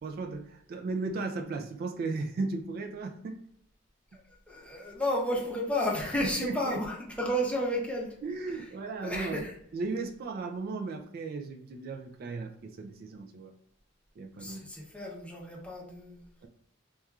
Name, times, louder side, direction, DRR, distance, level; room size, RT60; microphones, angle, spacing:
voice 1, 0.0-3.4 6.2-6.8 8.2-9.4 9.7-13.5 14.2-14.6 16.4-16.5, right 3 dB, 50° right, 4 dB, 0.3 m, -36 dB
voice 2, 4.5-8.1 9.0-9.5 14.4-16.2, equal, 5° left, -2 dB, 0.6 m, -32 dB
4.2 x 2.3 x 2.3 m, 0.69 s
head